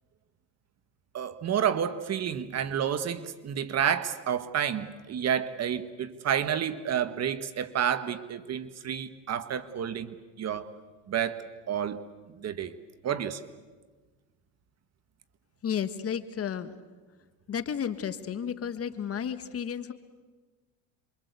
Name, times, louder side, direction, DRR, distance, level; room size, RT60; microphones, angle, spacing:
voice 1, 1.1-10.7 11.1-12.0 12.4-12.7 13.0-13.4, right 8 dB, 45° right, 1.6 m, -30 dB
voice 2, 15.6-16.8 17.5-19.9, left 8 dB, 40° left, 1.6 m, -32 dB
27.5 x 23.5 x 8.3 m
supercardioid pair, 105°, 36 cm